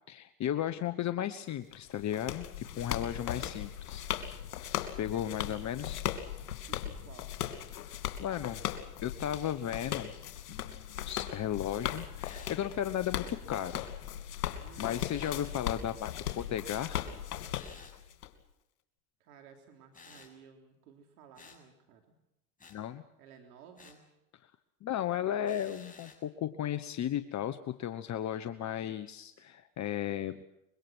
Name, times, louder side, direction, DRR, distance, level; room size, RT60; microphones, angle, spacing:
voice 1, 0.1-4.1 5.0-6.0 7.8-8.6 9.0-10.1 10.5-13.8 14.8-17.0 22.7-23.0 24.4-24.5 24.8-30.4, left 10 dB, 40° left, 11 dB, 1.3 m, -35 dB
sound 1, 1.7-18.3, left 11 dB, 85° left, 2.9 m, -38 dB
voice 2, 3.2-3.6 5.5-5.7 6.7-7.3 14.6-15.0 19.2-22.2 23.2-24.0, right 7 dB, 80° right, 4 dB, 3.6 m, -55 dB
sound 2, 12.2-12.6 15.1-15.4 17.5-18.0 19.9-20.3 21.3-21.6 22.6-22.8 23.8-24.0 25.4-26.2, left 4 dB, 20° left, 6.9 m, -54 dB
25.0 x 23.0 x 6.3 m, 0.89 s
hypercardioid pair, 95°, 44 cm